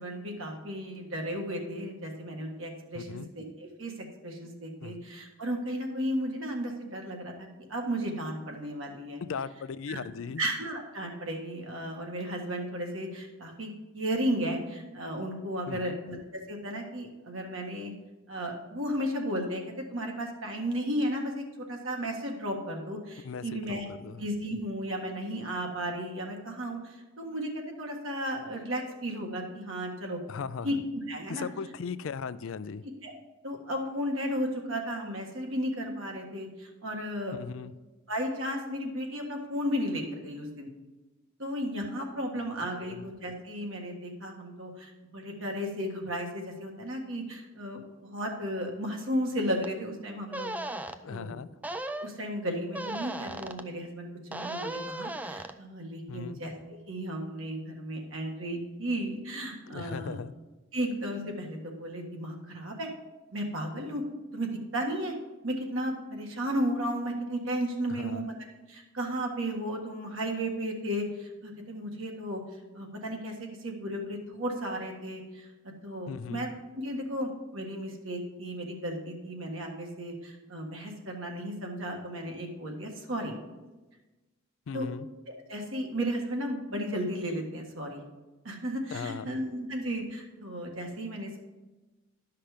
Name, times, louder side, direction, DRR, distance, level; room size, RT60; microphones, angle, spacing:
voice 1, 0.0-3.9 4.2-9.2 9.9-10.0 10.4-16.2 16.5-17.9 18.3-23.9 24.2-30.2 30.6-30.8 31.1-31.5 33.0-33.1 33.4-37.4 38.1-40.7 41.4-50.5 51.1-51.4 52.0-60.2 60.7-62.9 63.3-64.0 64.3-65.1 65.4-68.2 68.7-72.4 72.7-83.3 84.7-84.9 85.3-88.0 88.4-91.4, equal, 70° right, 2 dB, 1.6 m, -34 dB
voice 2, 2.9-3.3 4.8-5.0 9.3-10.4 15.7-16.0 23.2-24.2 30.3-30.7 31.3-32.8 37.3-37.7 42.8-43.0 51.0-51.5 56.1-56.4 59.7-60.3 68.0-68.3 76.1-76.5 84.7-85.1 88.9-89.4, left 5 dB, 70° left, 15 dB, 0.4 m, -38 dB
sound 1, 49.6-49.7 50.3-51.0 51.6-52.1 52.7-53.6 54.3-55.5, right 1 dB, 5° right, 0.3 m, -36 dB
11.5 x 5.8 x 5.0 m, 1.2 s
head